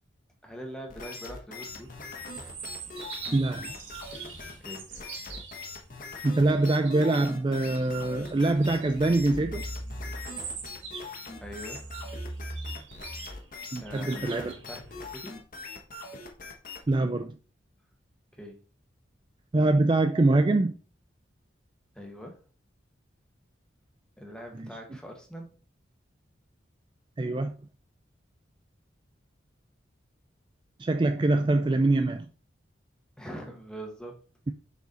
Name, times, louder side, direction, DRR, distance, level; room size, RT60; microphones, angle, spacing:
voice 1, 0.4-2.0 4.6-4.9 11.4-11.9 13.8-15.4 18.3-18.6 21.9-22.4 24.2-25.6 33.2-34.2, equal, 5° left, 1.4 m, -42 dB
sound 1, 0.9-17.0, left 3 dB, 45° left, 1.2 m, -42 dB
sound 2, 1.7-7.1 7.5-15.1, right 3 dB, 80° right, 1.6 m, -42 dB
voice 2, 3.3-3.8 6.2-9.7 13.7-14.5 16.9-17.4 19.5-20.8 24.5-24.7 27.2-27.5 30.8-32.3, right 2 dB, 25° right, 0.3 m, -24 dB
6.7 x 4.7 x 3.9 m
head